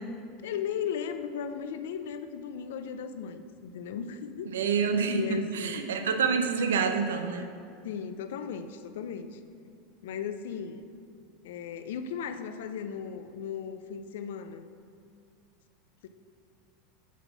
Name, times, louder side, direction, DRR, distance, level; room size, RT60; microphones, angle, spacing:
voice 1, 0.4-4.5 5.1-5.9 7.8-9.4 10.0-10.9 11.4-14.7 16.0-16.1, left 7 dB, 80° left, 10 dB, 0.5 m, -36 dB
voice 2, 4.5-5.2 5.5-7.5, right 5 dB, 90° right, 6 dB, 0.6 m, -27 dB
8.2 x 4.1 x 6.0 m, 2.3 s
hypercardioid pair, 105°, 0 cm